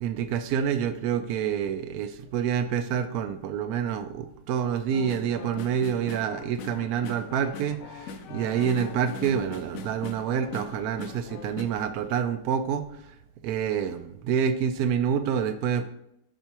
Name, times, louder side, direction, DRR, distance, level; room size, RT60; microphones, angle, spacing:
voice 1, 0.0-12.8 13.4-15.8, right 8 dB, 70° right, 10 dB, 1.0 m, -27 dB
sound 1, 4.9-11.6, left 4 dB, 70° left, 0.9 m, -40 dB
9.0 x 4.4 x 2.9 m, 0.79 s
omnidirectional pair, 1.8 m